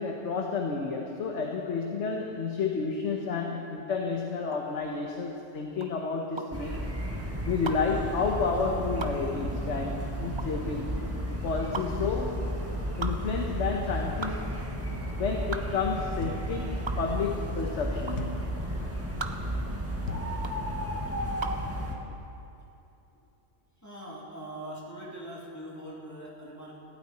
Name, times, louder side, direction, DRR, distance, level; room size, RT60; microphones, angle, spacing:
voice 1, 0.0-6.8 7.4-11.0 11.4-12.5 13.0-14.6 15.1-18.4, left 4 dB, 65° left, 1 dB, 1.4 m, -31 dB
sound 1, 4.4-21.7, right 3 dB, 30° right, 0.6 m, -40 dB
sound 2, 6.5-21.9, equal, 10° right, 1.6 m, -33 dB
sound 3, 16.2-16.6 18.2-18.6 20.1-20.4, left 5 dB, 85° left, 1.3 m, -37 dB
voice 2, 23.8-26.8, right 1 dB, 15° left, -6 dB, 2.8 m, -42 dB
18.5 x 15.5 x 4.3 m, 2.8 s
omnidirectional pair, 1.3 m